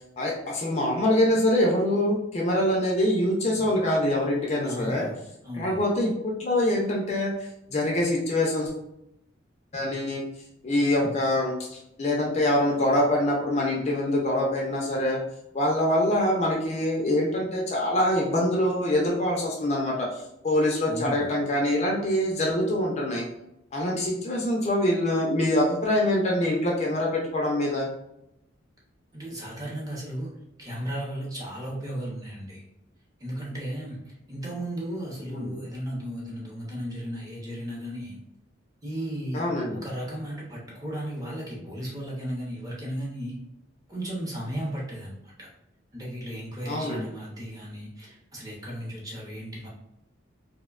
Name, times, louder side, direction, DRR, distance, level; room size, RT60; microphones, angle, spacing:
voice 1, 0.2-5.1 5.5-7.3 7.7-8.7 9.7-10.2 10.6-15.2 15.5-20.1 20.4-23.3 23.7-27.9 35.3-35.5 39.3-39.8 46.7-47.1, left 1 dB, 35° left, -2 dB, 0.4 m, -24 dB
voice 2, 4.6-5.2 5.4-5.8 20.9-21.3 29.1-30.3 30.6-32.6 33.2-38.2 38.8-43.4 43.9-45.5 45.9-49.7, equal, 20° right, -5 dB, 0.6 m, -35 dB
2.6 x 2.1 x 2.3 m, 0.84 s
head